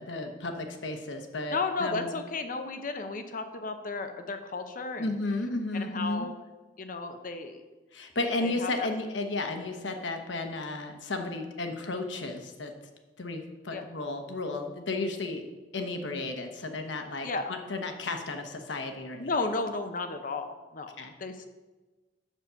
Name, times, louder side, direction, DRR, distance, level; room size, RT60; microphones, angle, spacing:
voice 1, 0.0-2.1 5.0-6.3 7.9-12.7 13.2-15.4 15.7-19.3 21.0-21.1, left 2 dB, 90° left, 5 dB, 1.0 m, -33 dB
voice 2, 1.5-5.2 5.7-6.3 6.8-7.6 8.4-8.7 13.7-13.8 17.2-17.5 19.2-20.9 21.2-21.5, left 3 dB, 50° left, 7 dB, 0.7 m, -33 dB
7.3 x 6.8 x 5.7 m, 1.2 s
head